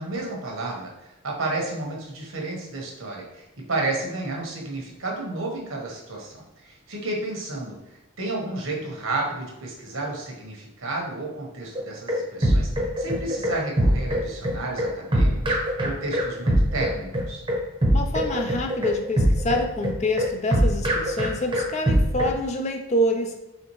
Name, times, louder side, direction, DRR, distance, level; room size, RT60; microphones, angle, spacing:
voice 1, 0.0-15.5 15.8-17.4, right 2 dB, 75° right, -1 dB, 1.2 m, -32 dB
sound 1, 11.7-22.4, equal, 25° right, 0.8 m, -22 dB
voice 2, 17.9-23.4, left 1 dB, 30° left, 4 dB, 0.4 m, -26 dB
4.3 x 3.6 x 3.0 m, 0.95 s
head